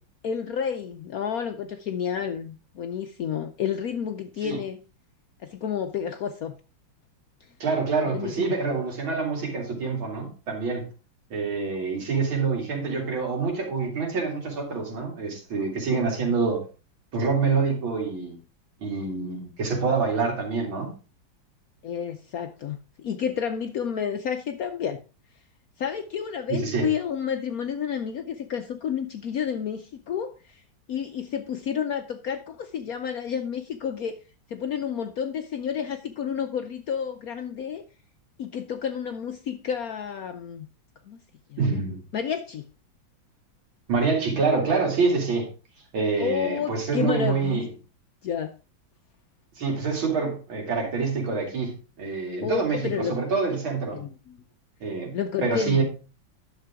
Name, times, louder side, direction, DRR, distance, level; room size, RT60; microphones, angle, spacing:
voice 1, 0.2-4.8 5.4-6.6 8.1-8.5 15.9-16.0 21.8-25.0 25.8-30.6 30.9-34.2 34.5-37.8 38.4-40.7 41.1-41.2 41.5-41.8 42.1-42.7 46.2-47.7 48.2-48.6 52.4-53.3 53.9-54.1 55.1-55.8, left 7 dB, 70° left, 7 dB, 0.9 m, -30 dB
voice 2, 7.6-10.9 11.3-16.6 17.1-18.4 18.8-20.9 26.5-26.9 41.6-42.0 43.9-45.5 45.9-47.7 49.6-54.0 54.8-55.1 55.4-55.8, right 4 dB, 85° right, 1 dB, 3.3 m, -26 dB
10.5 x 6.7 x 3.5 m, 0.33 s
omnidirectional pair, 2.2 m